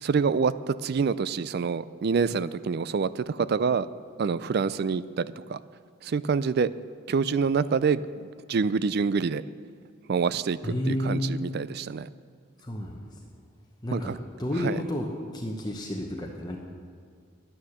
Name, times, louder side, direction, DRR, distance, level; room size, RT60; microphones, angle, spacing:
voice 1, 0.0-3.9 4.2-5.6 6.0-6.7 7.1-9.4 10.1-12.1 13.9-14.2 14.5-14.8, right 5 dB, 50° right, 17 dB, 0.3 m, -26 dB
voice 2, 10.6-11.4 12.6-12.9 13.8-14.1 14.4-15.1 15.3-16.6, left 1 dB, 20° left, 0 dB, 0.8 m, -30 dB
11.5 x 9.5 x 7.2 m, 2.2 s
head